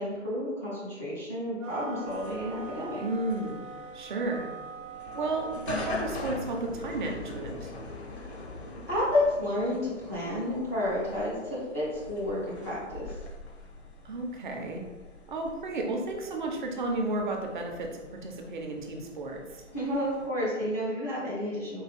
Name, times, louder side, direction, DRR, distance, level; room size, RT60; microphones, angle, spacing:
voice 1, 0.0-3.0 8.9-13.1 19.7-21.8, left 1 dB, 15° left, -12 dB, 0.4 m, -30 dB
sound 1, 1.6-6.2, right 4 dB, 85° right, 0.5 m, -43 dB
sound 2, 2.1-20.3, left 3 dB, 60° left, 0.8 m, -43 dB
voice 2, 3.0-3.7 3.9-4.5 5.1-7.7 14.0-14.8 15.3-19.6, right 2 dB, 40° right, 2 dB, 0.6 m, -33 dB
4.4 x 2.3 x 3.4 m, 1.2 s
figure-of-eight pair, 120°, 37 cm